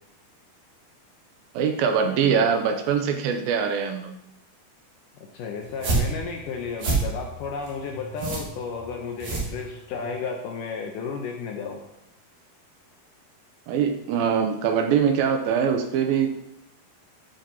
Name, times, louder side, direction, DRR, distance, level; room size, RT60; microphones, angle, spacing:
voice 1, 1.5-4.1 13.7-16.3, right 7 dB, 85° right, 5 dB, 2.4 m, -23 dB
voice 2, 5.3-11.8, left 5 dB, 75° left, 1 dB, 2.0 m, -33 dB
sound 1, 5.6-10.1, right 4 dB, 65° right, 3.2 m, -28 dB
11.5 x 5.1 x 2.8 m, 0.80 s
omnidirectional pair, 4.3 m